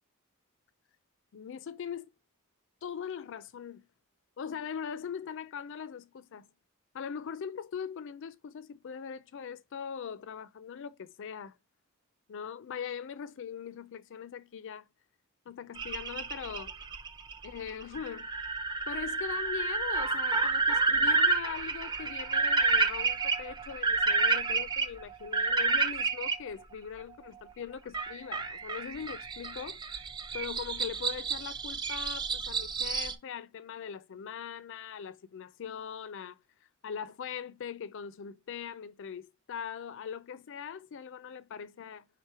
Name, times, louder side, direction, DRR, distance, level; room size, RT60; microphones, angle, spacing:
voice 1, 1.3-2.1 2.8-3.8 4.4-6.5 6.9-11.6 12.3-14.9 15.5-16.7 17.4-18.3 18.9-29.8 30.3-36.4 36.8-42.1, left 7 dB, 60° left, 0.4 m, -41 dB
sound 1, 15.8-26.4 27.9-33.1, right 3 dB, 20° right, 0.5 m, -30 dB
3.5 x 2.9 x 4.7 m
head